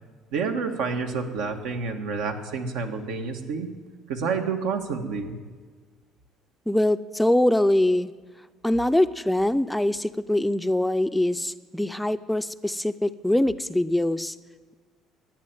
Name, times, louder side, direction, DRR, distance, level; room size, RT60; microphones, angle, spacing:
voice 1, 0.3-3.7 4.1-5.4, right 5 dB, 85° right, 4 dB, 1.6 m, -29 dB
voice 2, 6.7-8.1 8.6-14.4, left 1 dB, 5° left, 11 dB, 0.4 m, -23 dB
13.0 x 9.2 x 9.2 m, 1.5 s
cardioid pair, 115°, 0 cm